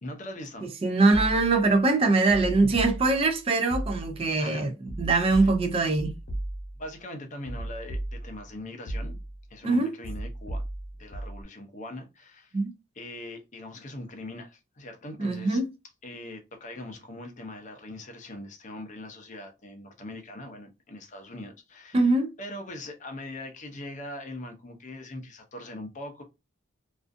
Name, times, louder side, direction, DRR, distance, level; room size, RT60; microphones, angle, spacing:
voice 1, 0.0-0.7 4.4-4.7 5.3-5.5 6.8-9.2 9.5-10.6 11.0-12.6 12.9-15.6 16.0-22.1 22.4-26.2, left 1 dB, 40° left, 0.6 m, -41 dB
voice 2, 0.6-4.7 5.0-6.1 9.6-9.9 12.5-12.7 15.2-15.7 21.9-22.3, right 3 dB, 30° right, 0.3 m, -23 dB
sound 1, 1.1-1.7 2.3-3.4 3.7-4.3 4.9-6.9 7.4-8.5 8.9-9.5 10.0-11.4, right 1 dB, 65° left, 0.9 m, -35 dB
2.5 x 2.4 x 2.4 m
head